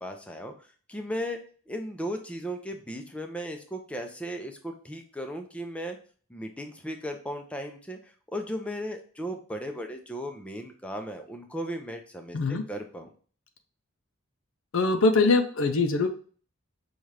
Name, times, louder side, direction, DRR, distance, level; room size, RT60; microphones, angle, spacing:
voice 1, 0.0-0.5 0.9-1.4 1.7-6.0 6.3-8.0 8.3-13.1, equal, 5° left, 4 dB, 0.5 m, -36 dB
voice 2, 14.7-16.1, left 3 dB, 70° left, 5 dB, 0.5 m, -22 dB
5.5 x 2.4 x 3.2 m, 0.42 s
head